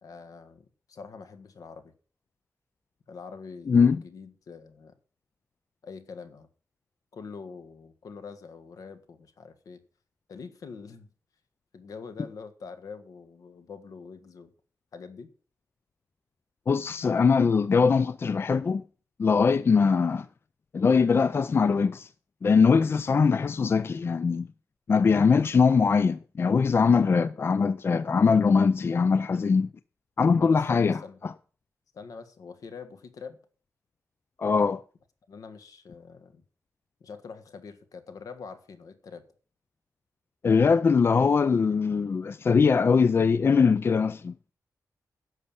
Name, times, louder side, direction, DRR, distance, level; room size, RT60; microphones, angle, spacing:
voice 1, 0.0-1.9 3.1-4.9 5.8-6.5 7.1-9.8 10.3-11.1 11.7-14.5 14.9-15.3 30.4-31.2 31.9-33.4 35.3-36.4 37.0-39.2, left 5 dB, 70° left, 1.6 m, -44 dB
voice 2, 3.7-4.0 16.7-18.8 19.2-20.3 20.7-22.1 22.4-24.5 24.9-29.7 30.2-31.3 34.4-34.8 40.4-44.5, left 5 dB, 40° left, 0.4 m, -22 dB
11.0 x 6.7 x 7.0 m
wide cardioid pair, 125°, 6 cm